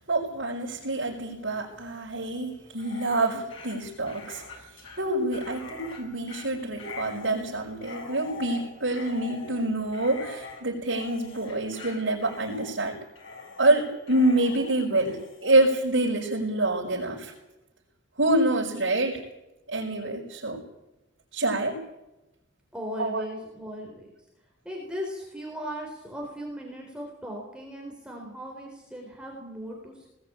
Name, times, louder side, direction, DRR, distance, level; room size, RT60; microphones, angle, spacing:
voice 1, 0.0-13.0 13.6-17.3 18.2-19.3 19.7-20.6 21.3-21.8 23.0-23.2, right 2 dB, 70° right, -6 dB, 5.0 m, -26 dB
Dog, 2.7-15.7, left 3 dB, 80° left, 6.5 m, -43 dB
voice 2, 22.7-24.1 24.6-30.1, equal, 5° right, -1 dB, 3.9 m, -37 dB
19.5 x 19.0 x 8.8 m, 0.95 s
head